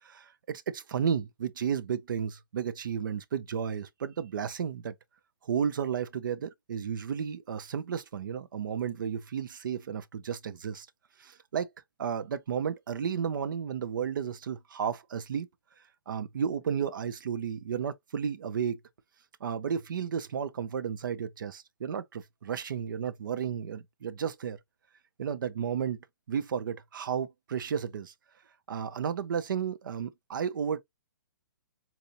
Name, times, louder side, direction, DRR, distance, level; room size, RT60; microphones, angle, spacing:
voice 1, 0.0-4.9 5.4-10.9 11.2-11.7 12.0-15.5 16.1-18.8 19.4-24.6 25.2-26.0 26.3-28.1 28.7-30.8, right 7 dB, 70° right, 0.6 m, -33 dB
4.1 x 2.7 x 2.5 m
hypercardioid pair, 140°, 11 cm